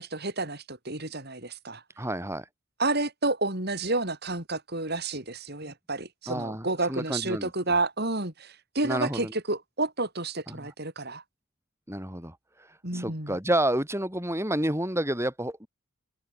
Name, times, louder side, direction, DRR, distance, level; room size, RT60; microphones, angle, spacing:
voice 1, 0.0-1.8 2.8-11.2 12.8-13.4, right 2 dB, 45° right, 5.7 m, -30 dB
voice 2, 2.0-2.4 5.6-5.7 6.3-7.5 8.8-9.3 10.5-10.7 11.9-12.4 12.9-15.7, right 1 dB, 10° right, 6.8 m, -29 dB
head